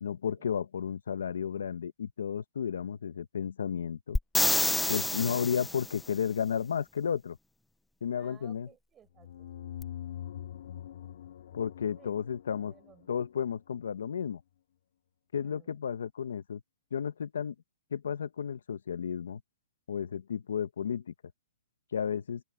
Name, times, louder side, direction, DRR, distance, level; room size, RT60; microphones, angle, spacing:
voice 1, 0.0-4.2 4.9-7.4 8.0-8.7 11.5-12.7 13.1-14.4 15.3-16.6 16.9-17.5 17.9-19.4 19.9-21.1 21.9-22.4, left 7 dB, 85° left, 1.0 m, -33 dB
sound 1, 4.2-6.0 9.8-9.9, left 2 dB, 5° left, 0.5 m, -28 dB
voice 2, 8.1-9.7 12.0-12.1 12.7-13.1 15.4-15.8, right 9 dB, 15° right, 5.3 m, -59 dB
sound 2, 9.1-13.7, left 11 dB, 60° left, 4.3 m, -44 dB
hypercardioid pair, 165°, 0 cm